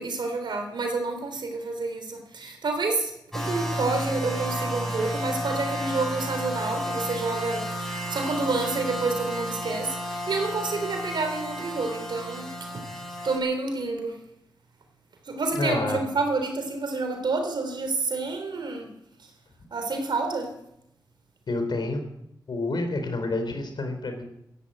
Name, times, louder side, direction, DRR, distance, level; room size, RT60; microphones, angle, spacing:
voice 1, 0.0-12.8 13.2-14.1 15.3-18.9 19.7-20.5, right 3 dB, 75° right, 5 dB, 3.6 m, -29 dB
sound 1, 3.3-13.4, equal, 5° left, 6.0 m, -32 dB
voice 2, 15.5-16.0 21.5-22.0 22.5-24.2, left 2 dB, 70° left, 6 dB, 4.0 m, -28 dB
14.0 x 11.0 x 9.1 m, 0.77 s
cardioid pair, 60°, 8 cm